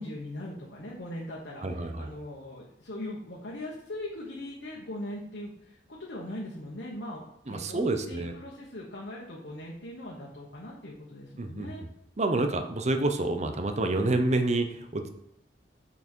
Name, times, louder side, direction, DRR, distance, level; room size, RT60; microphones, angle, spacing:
voice 1, 0.0-11.8, left 1 dB, 85° left, -4 dB, 1.4 m, -40 dB
voice 2, 1.6-2.2 7.5-8.3 11.4-11.9 12.2-15.1, right 2 dB, 40° right, 7 dB, 0.7 m, -28 dB
6.3 x 5.6 x 4.5 m, 0.80 s
head